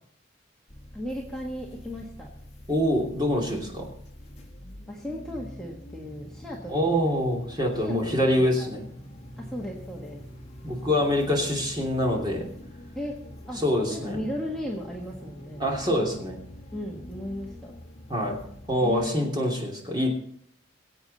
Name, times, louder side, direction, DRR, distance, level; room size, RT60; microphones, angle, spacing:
sound 1, 0.7-19.1, equal, 30° left, 1.5 m, -45 dB
voice 1, 0.9-2.3 4.9-7.1 7.8-8.7 9.4-10.2 12.9-13.1 13.5-13.6 13.9-15.6 16.7-17.7 18.8-19.3, equal, 5° left, -3 dB, 1.5 m, -36 dB
voice 2, 2.7-3.9 6.7-8.8 10.6-12.4 13.6-14.2 15.6-16.4 18.1-18.4 18.7-20.1, equal, 20° right, -1 dB, 2.8 m, -25 dB
23.0 x 8.1 x 4.2 m, 0.66 s
head